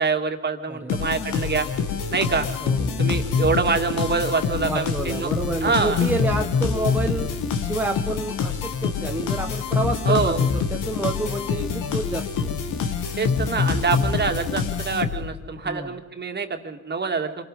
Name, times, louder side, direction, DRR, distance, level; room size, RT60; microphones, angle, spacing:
voice 1, 0.0-1.7 2.1-2.5 3.0-5.3 5.6-6.1 10.1-10.4 13.2-17.4, right 4 dB, 35° right, 5 dB, 2.4 m, -25 dB
voice 2, 0.7-1.1 2.6-3.2 4.6-12.6 13.9-14.1 15.6-16.0, right 2 dB, 5° right, 1 dB, 1.5 m, -29 dB
sound 1, 0.9-15.5, left 6 dB, 85° left, 2.3 m, -25 dB
27.0 x 18.5 x 5.5 m, 1.2 s
cardioid pair, 90°, 30 cm